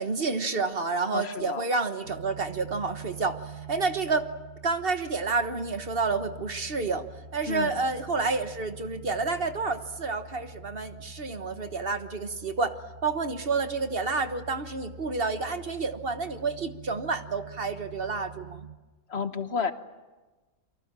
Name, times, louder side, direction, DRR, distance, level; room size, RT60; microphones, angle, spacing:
voice 1, 0.0-4.3 4.6-7.0 7.3-18.7, right 4 dB, 45° right, 8 dB, 1.4 m, -29 dB
voice 2, 1.1-1.6 7.5-7.8 19.1-19.7, left 5 dB, 50° left, 10 dB, 1.4 m, -31 dB
sound 1, 2.0-18.8, right 4 dB, 70° right, 1.8 m, -46 dB
28.5 x 24.5 x 7.5 m, 1.2 s
omnidirectional pair, 1.5 m